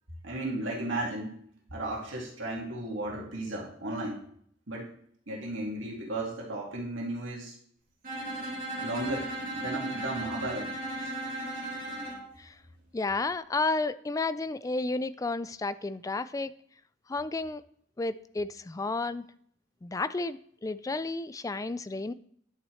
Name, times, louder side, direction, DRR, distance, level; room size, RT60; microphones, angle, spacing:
voice 1, 0.2-1.4 1.7-4.2 4.7-4.9 5.3-7.5 8.8-10.7, right 1 dB, 90° right, -3 dB, 2.3 m, -34 dB
Bowed string instrument, 8.0-12.3, right 1 dB, 45° right, 3.1 m, -36 dB
voice 2, 12.9-16.5 17.1-17.6 18.0-19.3 19.8-22.1, left 3 dB, 20° left, 14 dB, 0.3 m, -32 dB
10.5 x 8.3 x 3.2 m, 0.63 s
head